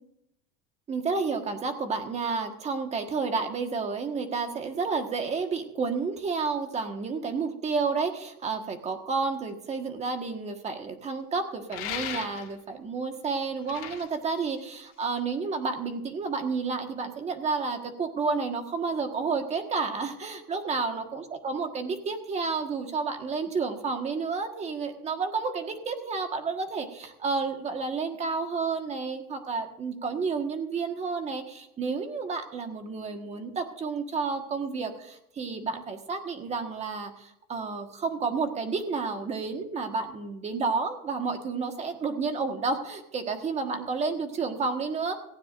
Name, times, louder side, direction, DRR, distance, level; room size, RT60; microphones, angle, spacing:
voice 1, 0.9-45.2, right 4 dB, 20° right, 6 dB, 1.5 m, -31 dB
sound 1, 11.7-12.7 13.5-15.2, left 10 dB, 45° left, 2.5 m, -37 dB
17.5 x 15.5 x 2.6 m, 0.81 s
cardioid pair, 170°, 30 cm